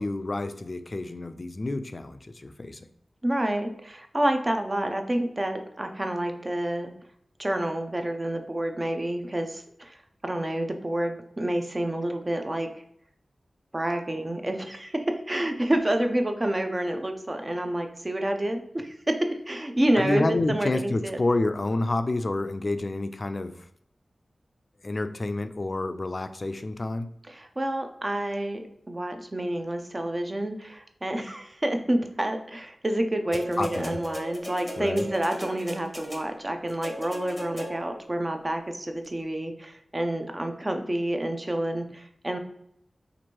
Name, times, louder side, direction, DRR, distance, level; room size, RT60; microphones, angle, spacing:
voice 1, 0.0-2.8 20.0-23.6 24.8-27.1 33.6-34.0 34.8-35.1, left 2 dB, 45° left, 10 dB, 0.3 m, -29 dB
voice 2, 3.2-6.9 7.4-10.0 10.2-12.8 13.7-21.2 27.3-42.4, right 1 dB, 30° right, 5 dB, 0.5 m, -28 dB
sound 1, 33.3-38.1 39.0-39.1, equal, 10° left, 0.8 m, -38 dB
2.9 x 2.5 x 4.4 m, 0.72 s
wide cardioid pair, 80°, 0 cm